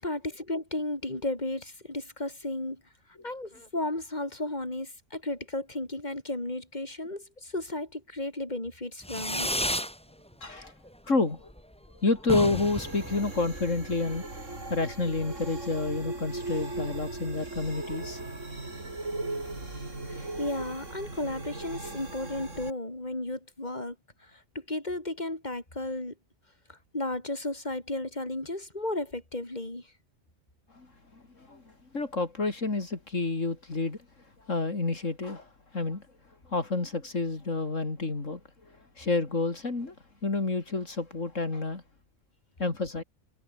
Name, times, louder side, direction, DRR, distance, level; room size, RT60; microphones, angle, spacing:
voice 1, 0.0-2.8 3.2-9.5 20.1-23.9 24.2-26.1 26.7-29.9, left 2 dB, 35° left, 5.1 m, -34 dB
Fireworks, 9.0-10.0 10.3-10.9 11.2-11.3 11.5-11.6 11.9-12.0 12.2-13.8, equal, 5° left, 3.1 m, -32 dB
voice 2, 10.4-10.7 11.1-11.5 11.9-14.2 14.7-18.2 30.7-30.9 31.1-34.0 34.4-36.0 36.5-40.0 40.2-41.8 42.6-43.0, left 3 dB, 75° left, 3.7 m, -29 dB
sound 1, 12.4-22.7, right 2 dB, 70° right, 5.3 m, -38 dB
omnidirectional pair, 1.3 m